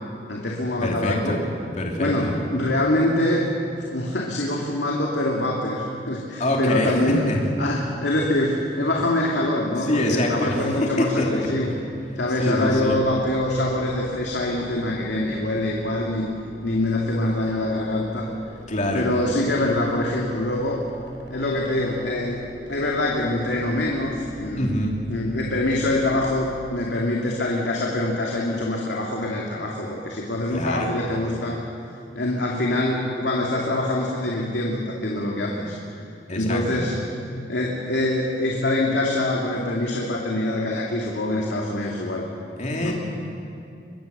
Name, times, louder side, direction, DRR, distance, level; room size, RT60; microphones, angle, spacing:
voice 1, 0.3-1.4 2.0-3.5 3.9-7.3 7.6-11.7 12.2-16.2 16.6-18.3 18.9-20.8 21.3-22.4 22.7-24.7 25.1-31.6 32.2-35.7 36.3-37.0 37.5-42.2 42.8-42.9, left 1 dB, 85° left, -2 dB, 2.5 m, -24 dB
voice 2, 0.8-1.4 1.8-2.4 6.4-7.0 7.3-7.4 9.9-10.6 11.0-11.2 12.4-13.0 18.7-19.1 24.5-24.9 30.5-30.9 36.3-36.8 42.6-42.9, left 1 dB, 45° left, 0 dB, 3.1 m, -24 dB
sound 1, 12.9-26.6, right 1 dB, 85° right, 5.4 m, -44 dB
23.5 x 22.0 x 6.8 m, 2.5 s
head